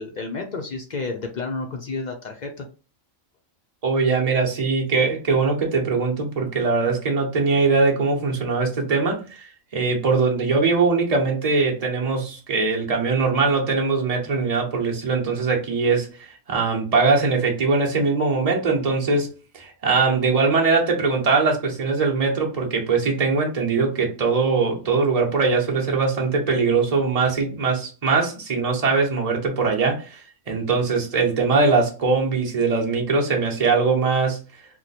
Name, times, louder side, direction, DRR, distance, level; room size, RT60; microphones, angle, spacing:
voice 1, 0.0-2.7, left 3 dB, 60° left, 0.4 m, -31 dB
voice 2, 3.8-16.1 16.5-34.4, right 4 dB, 30° right, 0.9 m, -21 dB
3.0 x 2.2 x 4.0 m
omnidirectional pair, 1.4 m